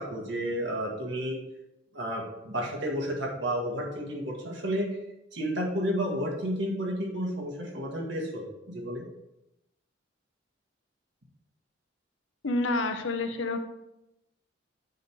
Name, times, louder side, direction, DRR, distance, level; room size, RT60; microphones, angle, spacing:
voice 1, 0.0-1.4 1.9-4.9 5.3-9.0, equal, 65° right, 0 dB, 1.8 m, -31 dB
voice 2, 12.4-13.6, left 2 dB, 75° left, 6 dB, 0.8 m, -28 dB
9.2 x 3.9 x 4.7 m, 0.90 s
head